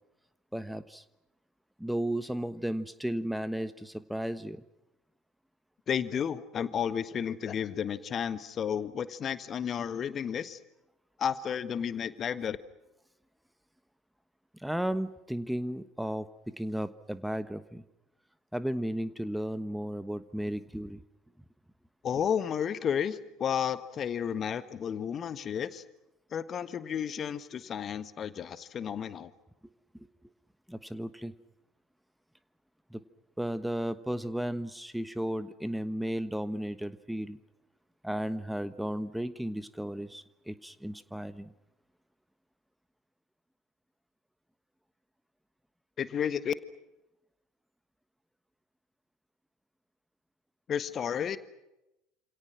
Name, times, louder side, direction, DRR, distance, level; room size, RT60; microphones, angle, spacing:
voice 1, 0.5-1.0 1.8-4.6 14.6-16.3 16.6-17.8 18.5-21.0 30.7-31.3 32.9-33.0 33.4-37.4 38.0-41.5, right 1 dB, ahead, 14 dB, 1.3 m, -34 dB
voice 2, 5.9-10.6 11.2-12.6 22.0-25.8 26.3-29.3 46.0-46.5 50.7-51.4, left 8 dB, 35° left, 14 dB, 1.6 m, -32 dB
28.5 x 28.0 x 6.2 m, 0.93 s
figure-of-eight pair, 65°, 0 cm